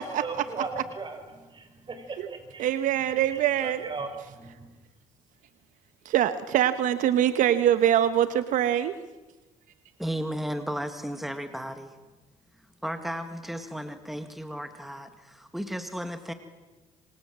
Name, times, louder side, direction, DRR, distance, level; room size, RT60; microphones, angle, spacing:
voice 1, 0.0-2.7 3.3-4.7, right 3 dB, 35° right, 7 dB, 5.9 m, -38 dB
voice 2, 2.6-3.8 6.0-8.9, right 11 dB, 75° right, 12 dB, 1.3 m, -23 dB
voice 3, 10.0-11.9 12.8-16.3, equal, ahead, 7 dB, 2.3 m, -34 dB
27.0 x 26.0 x 7.6 m, 1.2 s
cardioid pair, 90°, 13 cm